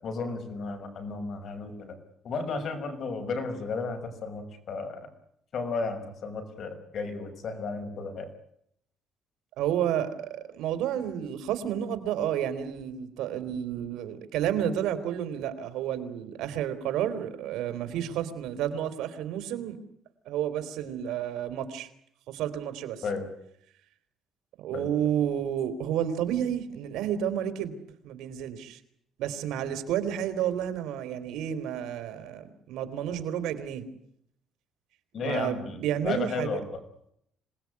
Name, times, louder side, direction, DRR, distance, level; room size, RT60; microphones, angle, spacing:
voice 1, 0.0-2.0 2.2-5.0 5.5-8.3 23.0-23.3 24.7-24.9 35.1-36.7, left 4 dB, 45° left, 6 dB, 5.9 m, -33 dB
voice 2, 9.6-19.8 20.2-21.9 22.3-23.0 24.6-27.7 28.0-28.8 29.2-33.9 35.2-36.6, right 10 dB, 80° right, 11 dB, 3.4 m, -31 dB
26.5 x 19.0 x 9.6 m, 0.73 s
cardioid pair, 150°, 0 cm